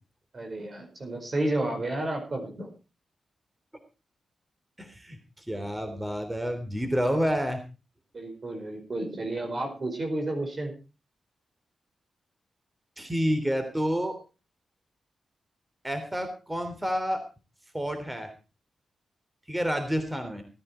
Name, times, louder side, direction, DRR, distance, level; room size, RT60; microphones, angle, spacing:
voice 1, 0.3-2.7 8.1-10.7, right 1 dB, 45° right, 3 dB, 4.8 m, -31 dB
voice 2, 4.8-7.6 13.0-14.2 15.8-17.2 17.7-18.3 19.5-20.4, equal, 15° right, 7 dB, 3.3 m, -29 dB
17.5 x 10.5 x 4.4 m, 0.33 s
cardioid pair, 70°, 0 cm